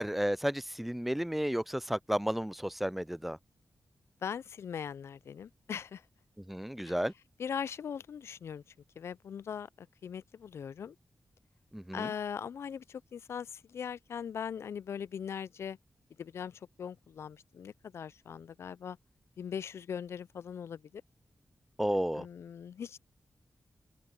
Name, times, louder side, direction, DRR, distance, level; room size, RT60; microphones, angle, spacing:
voice 1, 0.0-3.4 6.5-7.1 11.7-12.1 21.8-22.3, equal, 5° right, 0.3 m, -32 dB
voice 2, 4.2-6.0 6.9-7.0 7.4-8.6 9.0-11.0 11.9-15.8 16.2-19.0 19.4-21.0 22.2-23.0, left 7 dB, 75° left, 0.3 m, -40 dB
wide cardioid pair, 165°, 5 cm